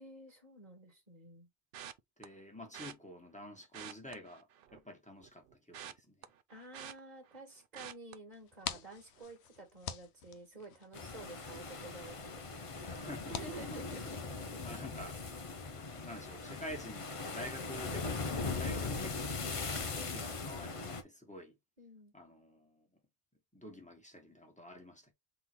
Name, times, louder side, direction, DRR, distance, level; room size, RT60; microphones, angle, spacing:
voice 1, 0.0-1.5 6.5-12.4 13.3-14.5 19.9-20.3 21.8-22.1, right 2 dB, 45° right, 1.7 m, -51 dB
sound 1, 1.7-2.3 2.7-2.9 3.6-4.9 5.2-7.4 7.7-8.1 8.6-8.9 9.2-9.3, right 9 dB, 65° right, 0.7 m, -48 dB
voice 2, 2.2-6.3 12.8-13.9 14.6-15.5 15.9-18.2 18.6-21.6 22.1-22.9 23.5-25.1, equal, 5° left, 1.4 m, -49 dB
sound 2, 8.3-14.6, left 8 dB, 85° left, 1.0 m, -48 dB
sound 3, 10.9-21.0, left 4 dB, 35° left, 0.7 m, -40 dB
3.8 x 3.1 x 4.4 m
omnidirectional pair, 1.1 m